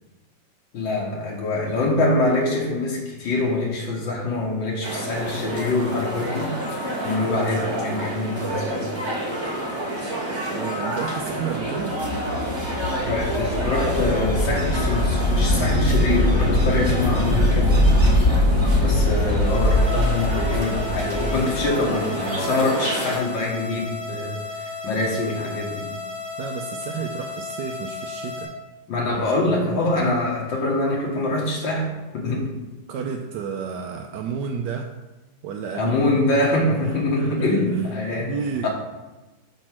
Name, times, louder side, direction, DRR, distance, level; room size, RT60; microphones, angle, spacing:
voice 1, 0.7-8.9 12.7-17.8 18.8-25.9 28.9-31.9 32.1-32.5 35.7-38.3 38.6-38.7, left 2 dB, 85° left, -3 dB, 2.1 m, -24 dB
sound 1, 4.8-23.2, right 1 dB, 15° right, 1.3 m, -29 dB
voice 2, 10.5-12.0 26.4-28.5 32.9-34.9 35.4-36.2 36.8-38.7, right 6 dB, 75° right, 3 dB, 1.1 m, -31 dB
sound 2, 11.6-21.7, left 1 dB, 30° left, 1.2 m, -21 dB
sound 3, 19.4-28.4, left 4 dB, 60° left, 2.1 m, -34 dB
5.3 x 4.5 x 6.0 m, 1.1 s
omnidirectional pair, 2.0 m